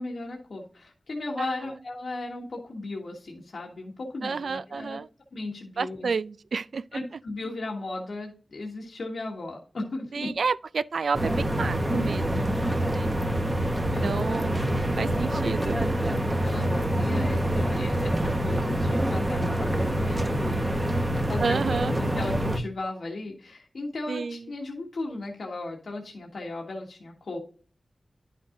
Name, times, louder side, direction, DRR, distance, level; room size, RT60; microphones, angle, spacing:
voice 1, 0.0-5.0 5.3-6.1 6.9-10.3 13.9-14.5 16.2-27.4, left 2 dB, 80° left, 1.6 m, -36 dB
voice 2, 4.2-5.1 5.8-7.0 10.1-13.1 13.7-14.7 15.0-15.8 21.4-21.9 24.1-24.4, right 5 dB, 85° right, 0.3 m, -30 dB
sound 1, 11.1-22.6, right 1 dB, 20° right, 0.9 m, -26 dB
11.0 x 5.8 x 2.6 m
wide cardioid pair, 80°, 0 cm